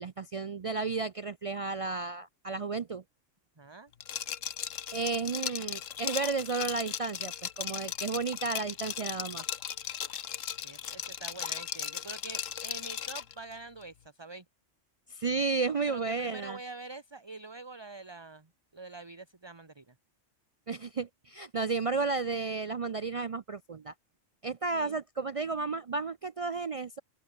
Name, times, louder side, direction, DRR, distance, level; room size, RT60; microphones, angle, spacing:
voice 1, 0.0-3.0 4.9-9.4 15.1-16.6 20.7-23.9 24.4-27.0, right 4 dB, 65° right, 0.3 m, -33 dB
voice 2, 3.6-3.9 10.6-14.4 15.9-19.9 24.7-24.9, right 3 dB, 20° right, 1.3 m, -45 dB
Liquid, 4.0-13.3, left 9 dB, 85° left, 1.3 m, -37 dB
open air
omnidirectional pair, 1.3 m